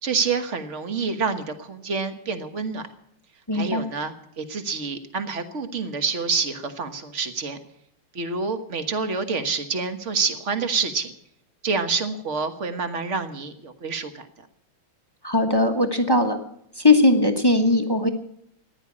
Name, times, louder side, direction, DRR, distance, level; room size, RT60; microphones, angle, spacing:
voice 1, 0.0-2.9 3.5-7.6 8.1-11.1 11.6-14.3, right 5 dB, 40° right, 8 dB, 1.4 m, -27 dB
voice 2, 3.5-3.8 15.2-16.4 16.8-18.1, left 2 dB, 15° left, 5 dB, 0.8 m, -19 dB
15.0 x 11.0 x 8.5 m, 0.73 s
omnidirectional pair, 2.4 m